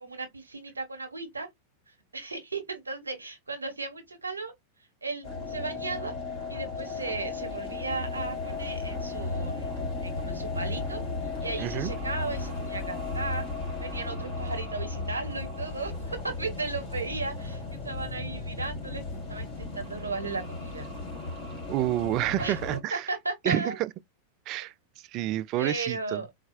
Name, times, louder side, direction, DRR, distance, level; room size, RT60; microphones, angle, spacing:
voice 1, 0.0-1.5 1.9-4.5 5.0-6.1 6.5-11.0 11.4-13.5 13.8-19.0 19.3-20.9 22.4-23.8 24.6-24.7 25.6-26.3, right 3 dB, 80° right, 1.1 m, -36 dB
sound 1, 5.2-22.8, left 3 dB, 40° left, 2.7 m, -35 dB
voice 2, 11.6-11.9 21.7-23.1 23.4-23.9 24.5-24.7 25.1-26.2, right 14 dB, 40° right, 0.3 m, -29 dB
4.0 x 2.3 x 2.3 m
figure-of-eight pair, 90°, 0 cm